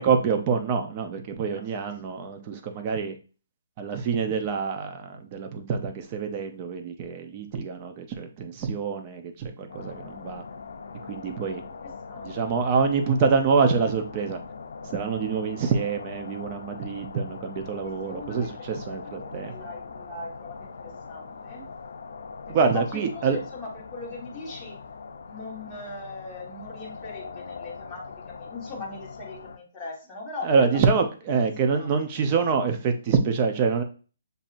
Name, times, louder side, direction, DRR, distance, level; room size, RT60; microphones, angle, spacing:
voice 1, 0.0-3.2 3.8-10.4 11.1-11.6 12.2-14.4 14.8-19.5 22.5-23.4 30.4-33.8, right 5 dB, 25° right, 6 dB, 0.6 m, -26 dB
voice 2, 1.4-2.2 11.7-12.6 17.8-21.7 22.5-24.8 25.2-30.8 31.7-31.9, left 3 dB, 10° left, -7 dB, 1.4 m, -40 dB
sound 1, 9.7-29.6, left 5 dB, 70° left, 0.6 m, -41 dB
7.3 x 2.7 x 2.6 m, 0.36 s
hypercardioid pair, 170°, 0 cm